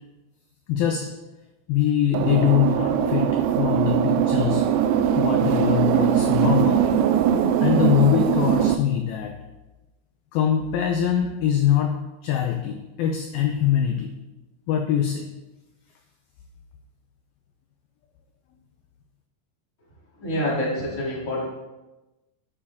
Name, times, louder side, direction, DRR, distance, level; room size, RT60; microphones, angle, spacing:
voice 1, 0.7-1.1 1.7-4.6 5.2-6.9 7.6-9.3 10.3-12.0 12.2-14.1 14.7-15.3, left 10 dB, 75° left, 4 dB, 2.3 m, -23 dB
sound 1, 2.1-8.8, right 9 dB, 90° right, 2.1 m, -21 dB
voice 2, 20.2-21.4, left 1 dB, 20° left, -5 dB, 2.6 m, -26 dB
11.0 x 8.7 x 3.7 m, 1.1 s
omnidirectional pair, 4.8 m